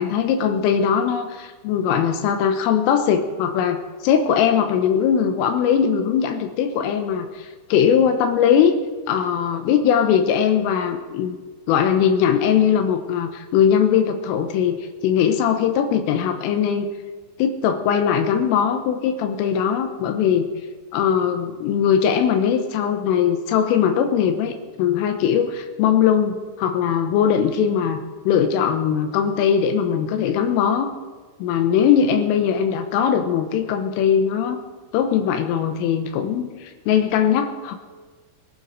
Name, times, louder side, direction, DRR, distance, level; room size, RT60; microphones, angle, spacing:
voice 1, 0.0-8.7 9.1-11.4 11.7-16.9 17.4-20.5 20.9-28.0 28.3-30.9 31.4-34.6 34.9-37.8, left 8 dB, 85° left, 6 dB, 3.7 m, -20 dB
22.0 x 12.0 x 4.8 m, 1.4 s
omnidirectional pair, 5.8 m